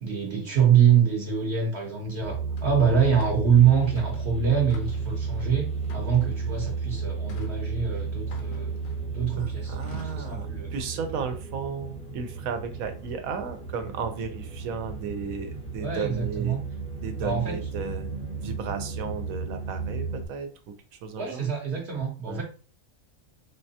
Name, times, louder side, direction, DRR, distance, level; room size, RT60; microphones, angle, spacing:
voice 1, 0.0-8.7 9.1-10.7 15.8-16.6 17.2-17.6 21.2-22.4, right 7 dB, 55° right, 0 dB, 1.0 m, -24 dB
sound 1, 2.2-20.3, right 5 dB, 5° left, 0.5 m, -33 dB
sound 2, 2.6-2.7 3.2-3.4 3.8-4.2 4.7-5.1 5.8-6.5 7.3-7.6 8.3-9.2 9.8-10.3, left 3 dB, 75° left, 1.2 m, -47 dB
voice 2, 9.4-16.6 17.0-21.5 22.3-22.4, right 5 dB, 80° right, 7 dB, 1.1 m, -34 dB
3.6 x 3.2 x 2.8 m, 0.38 s
omnidirectional pair, 1.4 m